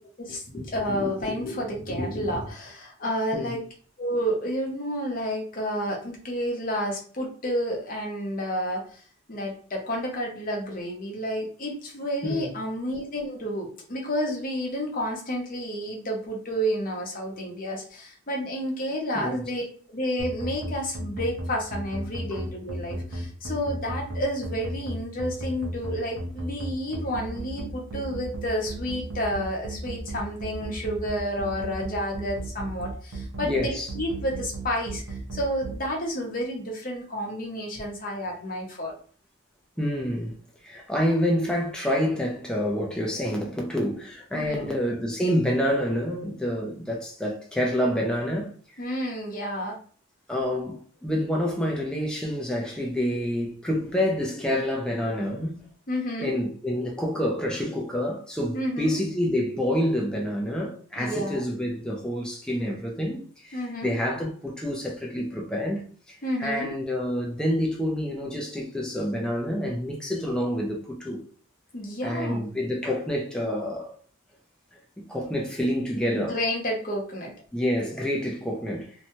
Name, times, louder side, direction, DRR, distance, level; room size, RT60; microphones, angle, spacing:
voice 1, 0.2-3.6 4.0-9.0 9.3-35.0 35.3-38.9 44.3-44.7 48.8-49.8 55.9-56.4 58.5-59.0 61.0-61.4 63.5-64.0 66.2-66.7 71.7-72.4 76.1-77.3, equal, 40° left, 0.8 m, -30 dB
voice 2, 19.1-19.5 33.4-33.9 39.8-40.3 40.6-48.8 50.3-55.6 56.2-71.2 72.0-74.0 75.1-76.4 77.5-78.9, equal, 5° left, 0.4 m, -28 dB
sound 1, 20.2-35.7, right 2 dB, 85° right, 0.6 m, -34 dB
2.7 x 2.2 x 2.9 m
head